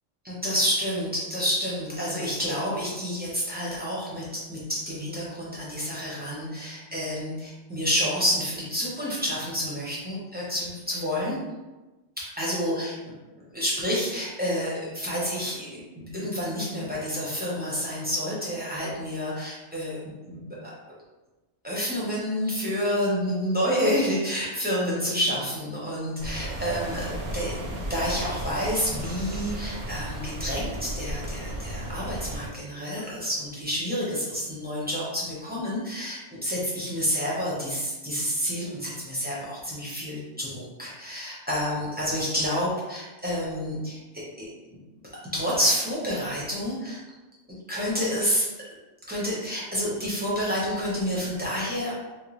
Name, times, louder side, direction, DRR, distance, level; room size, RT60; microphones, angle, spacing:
voice 1, 0.2-11.4 12.4-13.0 13.5-20.0 20.3-20.7 21.6-44.5 45.3-47.0 47.7-48.4 49.1-52.0, equal, 10° right, -7 dB, 0.7 m, -29 dB
sound 1, 26.2-32.5, right 1 dB, 50° right, 0.6 m, -34 dB
3.6 x 2.2 x 3.1 m, 1.1 s
omnidirectional pair, 1.3 m